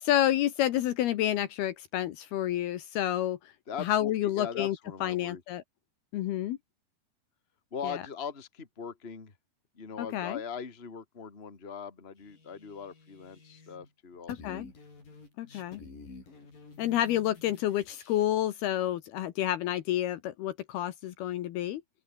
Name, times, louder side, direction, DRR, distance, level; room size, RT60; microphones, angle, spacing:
voice 1, 0.0-3.4 3.8-4.8 5.0-5.6 6.1-6.6 7.8-8.0 10.0-10.4 14.3-14.7 15.4-15.8 16.8-21.8, left 12 dB, 70° left, 2.9 m, -29 dB
voice 2, 3.7-5.4 7.7-9.3 9.7-14.6, left 6 dB, 20° left, 2.1 m, -40 dB
sound 1, 12.2-13.9 14.1-18.2, left 4 dB, 50° left, 9.0 m, -51 dB
open air
omnidirectional pair, 5.1 m